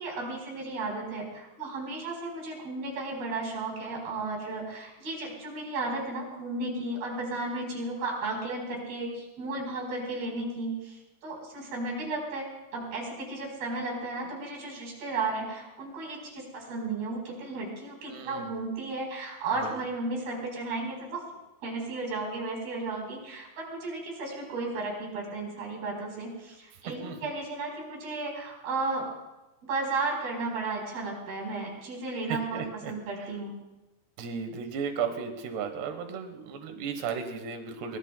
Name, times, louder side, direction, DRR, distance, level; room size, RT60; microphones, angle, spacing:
voice 1, 0.0-12.5 12.7-21.2 21.6-29.1 29.7-33.5, right 3 dB, 70° right, 0 dB, 6.2 m, -34 dB
voice 2, 18.0-18.6 19.6-19.7 27.0-27.3 32.3-32.9 33.2-33.3 34.2-38.0, right 6 dB, 90° right, 6 dB, 3.4 m, -35 dB
23.5 x 23.0 x 2.2 m, 1.1 s
omnidirectional pair, 4.6 m